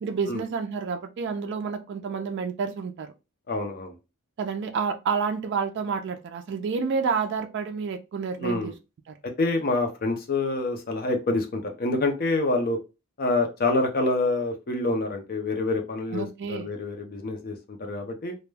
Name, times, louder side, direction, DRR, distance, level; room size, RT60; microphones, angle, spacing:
voice 1, 0.0-3.1 4.4-8.7 9.1-9.2 16.1-16.7, right 5 dB, 55° right, 6 dB, 0.3 m, -29 dB
voice 2, 3.5-3.9 8.4-8.7 9.4-12.8 13.2-18.4, left 2 dB, 45° left, 4 dB, 0.5 m, -27 dB
2.2 x 2.1 x 3.1 m, 0.28 s
head